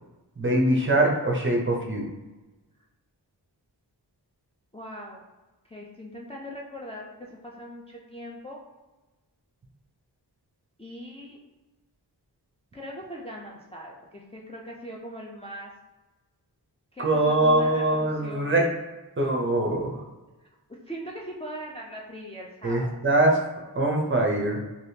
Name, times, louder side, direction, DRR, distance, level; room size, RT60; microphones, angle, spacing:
voice 1, 0.4-2.1 17.0-18.7 19.2-20.0 22.6-23.4 23.7-24.6, right 1 dB, 30° right, 0 dB, 0.6 m, -23 dB
voice 2, 4.7-5.2 5.7-8.6 10.8-11.4 12.7-15.7 16.9-18.6 20.9-23.0, equal, 15° left, -3 dB, 0.4 m, -40 dB
3.3 x 2.4 x 2.7 m, 1.2 s
wide cardioid pair, 75°, 42 cm